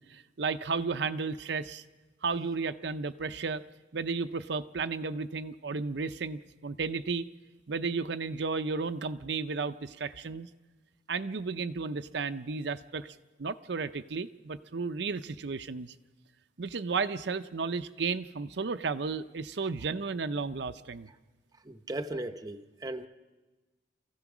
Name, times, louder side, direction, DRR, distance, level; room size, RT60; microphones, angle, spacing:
voice 1, 0.1-1.8 2.2-3.6 3.9-7.3 7.7-10.5 11.1-15.9 16.6-21.1, right 4 dB, 65° right, 9 dB, 0.6 m, -33 dB
voice 2, 21.6-23.1, right 1 dB, 20° right, 7 dB, 0.8 m, -37 dB
28.0 x 15.0 x 6.1 m, 1.2 s
head